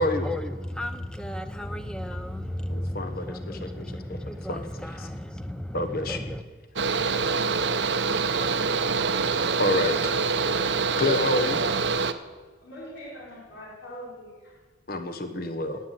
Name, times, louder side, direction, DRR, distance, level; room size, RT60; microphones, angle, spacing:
voice 1, 0.0-6.4, left 1 dB, 5° left, 0.7 m, -34 dB
voice 2, 2.7-3.1 3.6-3.7 4.5-4.6 5.7-6.2 9.6-9.9 11.0-11.6 14.9-15.8, left 1 dB, 50° left, 1.1 m, -26 dB
Mechanical fan, 6.8-12.1, right 4 dB, 65° right, 0.8 m, -25 dB
voice 3, 12.6-14.7 15.1-15.3, equal, 75° left, 4.5 m, -44 dB
19.0 x 9.2 x 7.5 m
head